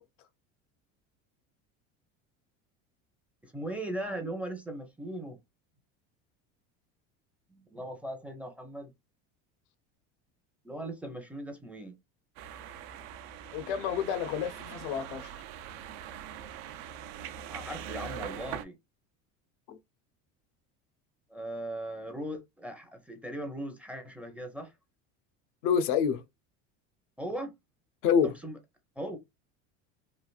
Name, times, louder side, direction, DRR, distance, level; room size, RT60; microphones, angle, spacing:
voice 1, 3.4-5.4 7.5-8.9 10.6-12.0 17.5-18.7 21.3-24.7 27.2-27.5 28.2-28.6 29.0-29.2, right 1 dB, 5° right, 0.5 m, -38 dB
sound 1, 12.4-18.6, right 9 dB, 70° right, 0.5 m, -42 dB
voice 2, 13.5-15.3 19.7-19.8 25.6-26.2 28.0-28.3, left 7 dB, 85° left, 0.7 m, -28 dB
3.3 x 2.4 x 2.3 m
cardioid pair, 135°, 35 cm